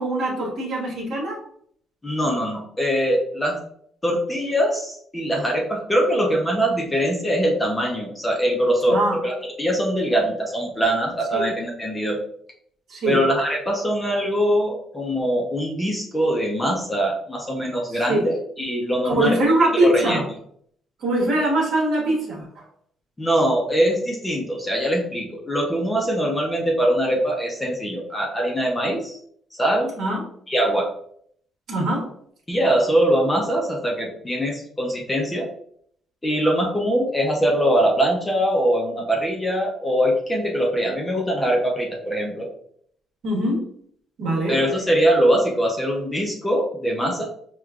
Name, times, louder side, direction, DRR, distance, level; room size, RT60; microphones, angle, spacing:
voice 1, 0.0-1.4 8.9-9.2 11.3-11.4 12.9-13.2 18.1-18.2 19.0-20.2 21.0-22.5 30.0-30.2 31.7-32.1 43.2-43.7 44.2-44.6, right 1 dB, 55° right, -2 dB, 1.4 m, -22 dB
voice 2, 2.0-3.6 4.0-12.2 13.0-19.4 19.8-20.2 23.2-29.2 29.6-29.9 30.5-30.9 32.5-35.5 36.2-42.5 44.5-47.2, equal, 10° left, -1 dB, 0.6 m, -22 dB
6.2 x 2.3 x 2.3 m, 0.64 s
cardioid pair, 170°, 0 cm